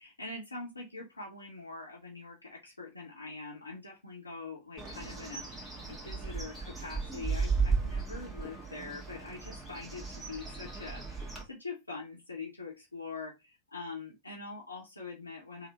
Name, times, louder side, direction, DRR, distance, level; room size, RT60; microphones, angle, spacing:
voice 1, 0.0-15.7, left 3 dB, 80° left, -3 dB, 0.8 m, -44 dB
Bird, 4.8-11.4, right 4 dB, 5° right, 1.3 m, -35 dB
3.3 x 2.1 x 4.0 m, 0.22 s
figure-of-eight pair, 90°, 0 cm